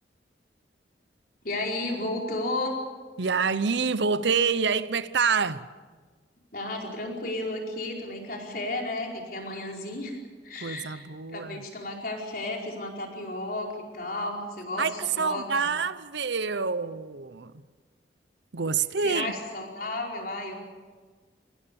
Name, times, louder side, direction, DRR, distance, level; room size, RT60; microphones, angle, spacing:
voice 1, 1.4-2.8 6.5-15.6 19.0-20.5, left 2 dB, 50° left, 4.8 m, -33 dB
voice 2, 3.2-5.6 10.6-11.6 14.8-17.6 18.5-19.3, right 5 dB, 70° right, 0.8 m, -27 dB
24.5 x 20.5 x 7.1 m
head